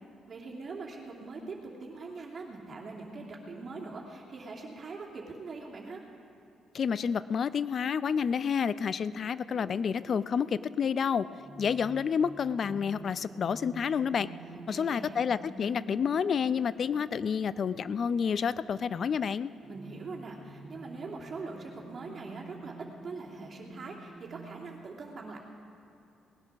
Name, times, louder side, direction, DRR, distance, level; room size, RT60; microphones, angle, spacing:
voice 1, 0.3-6.0 14.7-15.3 19.7-25.4, right 3 dB, 45° right, -2 dB, 2.6 m, -42 dB
voice 2, 6.7-11.3 11.6-14.3 14.7-19.5, left 7 dB, 55° left, 16 dB, 0.4 m, -29 dB
sound 1, 9.0-24.8, right 2 dB, 30° right, 2.8 m, -49 dB
18.5 x 10.5 x 6.2 m, 2.7 s
supercardioid pair, 65°, 0 cm